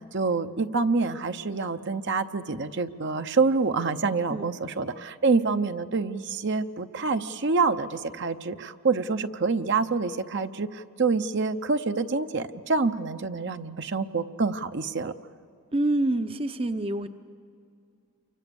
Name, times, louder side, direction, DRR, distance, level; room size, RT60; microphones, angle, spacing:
voice 1, 0.0-15.1, right 4 dB, 55° right, 9 dB, 0.8 m, -27 dB
voice 2, 15.7-17.1, right 1 dB, 25° right, 9 dB, 0.7 m, -26 dB
29.0 x 25.0 x 7.1 m, 2.4 s
head